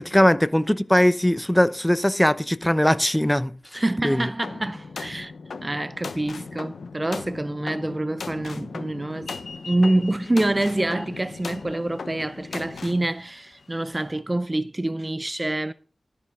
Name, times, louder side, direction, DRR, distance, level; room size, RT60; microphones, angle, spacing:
voice 1, 0.0-4.3, equal, 10° left, 0.7 m, -20 dB
voice 2, 3.7-5.3 5.6-9.3 9.7-15.7, right 1 dB, 25° right, 0.5 m, -26 dB
sound 1, 4.4-13.1, left 4 dB, 85° left, 0.9 m, -38 dB
sound 2, 9.2-14.2, left 4 dB, 65° left, 1.3 m, -44 dB
12.5 x 9.6 x 3.7 m
wide cardioid pair, 75°, 0 cm